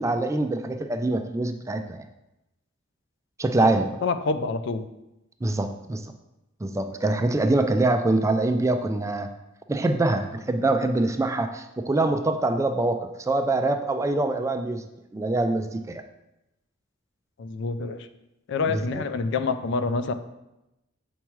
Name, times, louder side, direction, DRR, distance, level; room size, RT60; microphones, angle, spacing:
voice 1, 0.0-2.0 3.4-3.9 5.4-6.0 6.6-9.3 9.7-14.8 15.1-16.0 18.7-19.0, right 2 dB, 15° right, 6 dB, 0.3 m, -24 dB
voice 2, 4.0-4.9 17.4-18.0 18.5-20.1, left 4 dB, 60° left, 10 dB, 0.4 m, -27 dB
7.1 x 4.4 x 3.1 m, 0.92 s
head